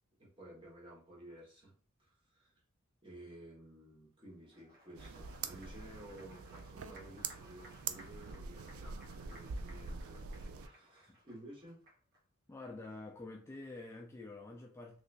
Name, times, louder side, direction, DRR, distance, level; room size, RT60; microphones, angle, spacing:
voice 1, 0.2-2.5 3.0-10.2 10.6-11.8, right 1 dB, 25° right, 1.4 m, -54 dB
Applause, 4.4-12.2, equal, 45° right, 1.1 m, -60 dB
sound 1, 5.0-10.7, right 5 dB, 85° right, 0.4 m, -45 dB
voice 2, 12.5-15.0, left 2 dB, 15° left, 0.3 m, -48 dB
3.2 x 2.9 x 2.5 m
head